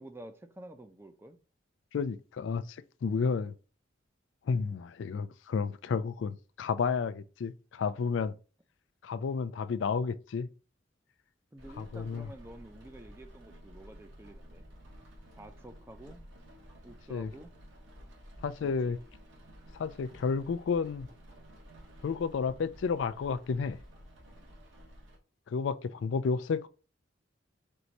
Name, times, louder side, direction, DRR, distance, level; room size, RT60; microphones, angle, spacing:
voice 1, 0.0-1.4 11.5-14.6 15.4-16.2 16.8-17.5 18.6-19.0 25.9-26.1, right 1 dB, 15° right, 0.5 m, -50 dB
voice 2, 1.9-3.5 4.5-8.3 9.0-10.5 11.8-12.3 17.1-17.3 18.4-19.0 19.8-21.1 22.0-23.8 25.5-26.7, left 5 dB, 75° left, 0.3 m, -31 dB
Rain, 11.6-25.2, equal, 80° right, 1.4 m, -53 dB
4.5 x 2.7 x 4.0 m
head